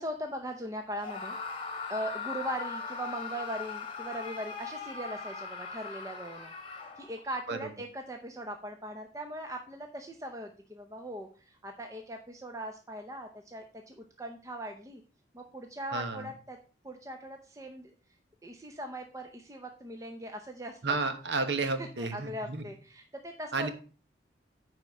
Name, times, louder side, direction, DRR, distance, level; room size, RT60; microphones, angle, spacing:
voice 1, 0.0-1.4 1.9-6.5 7.0-15.0 15.3-16.6 16.8-17.9 18.4-21.0 21.8-23.7, equal, 20° right, 4 dB, 0.7 m, -40 dB
Screaming, 1.0-7.3, left 5 dB, 30° left, 1.2 m, -39 dB
voice 2, 15.9-16.3 20.8-22.7 23.5-23.7, right 3 dB, 75° right, 8 dB, 1.2 m, -32 dB
9.7 x 4.3 x 5.3 m, 0.38 s
head